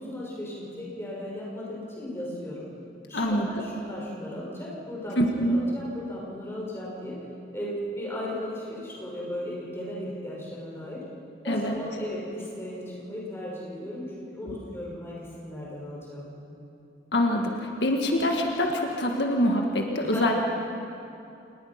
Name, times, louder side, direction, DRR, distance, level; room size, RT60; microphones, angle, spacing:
voice 1, 0.0-2.7 3.1-7.2 7.5-11.0 11.4-16.3 20.0-20.3, left 1 dB, 15° left, -5 dB, 5.9 m, -36 dB
voice 2, 3.1-3.5 5.2-5.7 11.5-11.7 17.1-20.3, left 1 dB, 75° left, 2 dB, 1.7 m, -25 dB
27.5 x 20.5 x 5.9 m, 2.7 s
head